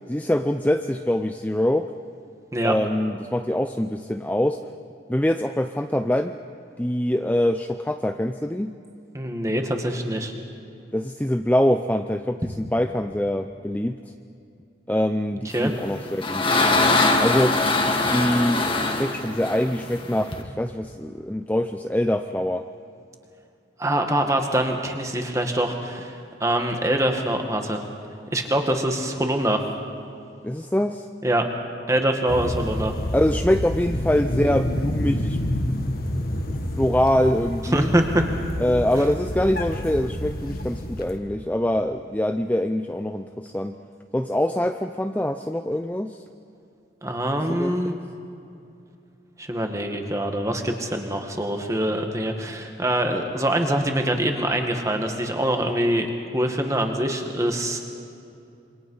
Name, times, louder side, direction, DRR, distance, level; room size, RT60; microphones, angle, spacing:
voice 1, 0.1-1.9 2.6-4.6 5.1-6.4 6.8-8.7 10.9-14.0 14.9-16.5 17.2-17.6 18.1-22.7 30.4-31.1 33.1-35.4 36.8-37.9 38.6-43.8 44.1-46.2 47.5-48.0, left 1 dB, 10° left, 6 dB, 0.5 m, -24 dB
voice 2, 9.1-10.3 15.5-15.7 23.8-27.8 28.3-29.6 31.2-31.5 31.9-32.9 37.7-38.2 47.0-48.0 49.4-56.1 56.3-57.8, right 1 dB, 15° right, 4 dB, 1.9 m, -24 dB
sound 1, 15.7-20.4, left 2 dB, 30° left, 1.8 m, -22 dB
sound 2, 32.3-41.2, left 1 dB, 50° left, 1.7 m, -28 dB
27.0 x 24.5 x 5.7 m, 2.6 s
head